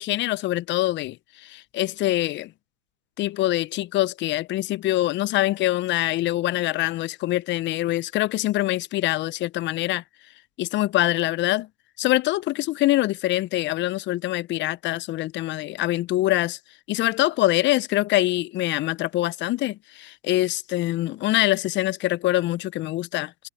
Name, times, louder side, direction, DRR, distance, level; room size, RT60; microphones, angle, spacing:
voice 1, 0.0-2.5 3.2-10.0 10.6-11.7 12.0-16.6 16.9-23.5, left 16 dB, 25° left, 0.9 m, -24 dB
hypercardioid pair, 110°, 42 cm